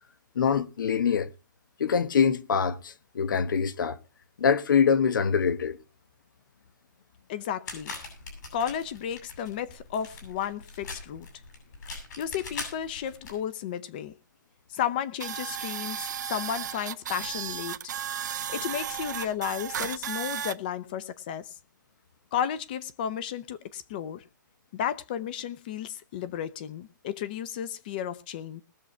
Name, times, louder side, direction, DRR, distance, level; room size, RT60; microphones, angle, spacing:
voice 1, 0.3-1.3 1.8-4.0 4.4-5.8, left 6 dB, 85° left, 1.3 m, -24 dB
voice 2, 7.3-7.9 8.5-11.3 12.2-14.1 14.7-17.8 18.3-21.5 22.3-24.2 24.7-28.6, left 9 dB, 25° left, 0.7 m, -33 dB
sound 1, 7.7-13.3, left 3 dB, 60° left, 7.4 m, -42 dB
sound 2, 15.2-20.5, right 9 dB, 65° right, 1.0 m, -34 dB
20.5 x 7.1 x 4.4 m
hypercardioid pair, 180°, 11 cm